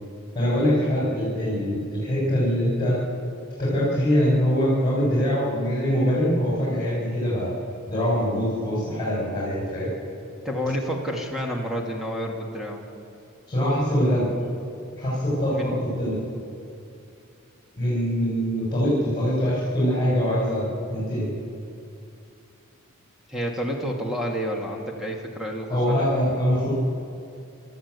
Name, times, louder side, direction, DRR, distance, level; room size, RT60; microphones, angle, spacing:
voice 1, 0.3-3.0 3.6-7.5 7.9-9.9 13.5-14.3 15.0-16.2 17.8-21.3 25.7-26.7, equal, 20° left, -7 dB, 6.8 m, -23 dB
voice 2, 10.4-12.8 15.5-15.8 23.3-26.1, equal, ahead, -1 dB, 2.3 m, -29 dB
29.5 x 13.0 x 8.4 m, 2.5 s
head